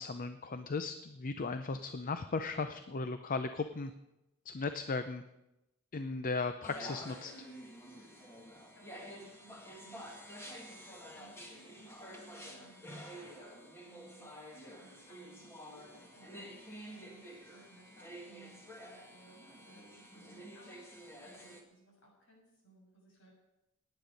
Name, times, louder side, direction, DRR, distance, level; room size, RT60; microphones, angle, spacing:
voice 1, 0.0-3.9 4.5-5.2 5.9-7.5, left 4 dB, 40° left, 9 dB, 0.5 m, -37 dB
sound 1, 6.6-21.6, equal, 10° left, 1.9 m, -50 dB
voice 2, 8.1-8.5 8.7-10.0 10.8-14.3 14.8-16.6 16.9-23.3, right 1 dB, 60° left, -2 dB, 6.4 m, -61 dB
17.5 x 9.8 x 5.2 m, 0.93 s
head